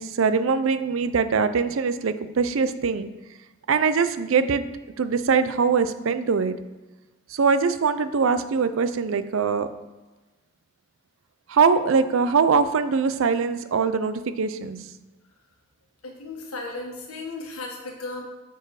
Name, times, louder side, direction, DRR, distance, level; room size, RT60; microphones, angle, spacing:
voice 1, 0.0-3.1 3.7-4.7 5.0-6.6 7.3-9.7 11.5-14.8, right 5 dB, 65° right, 12 dB, 0.5 m, -22 dB
voice 2, 16.0-18.2, left 2 dB, 90° left, 1 dB, 1.4 m, -35 dB
6.3 x 5.3 x 4.7 m, 1.1 s
head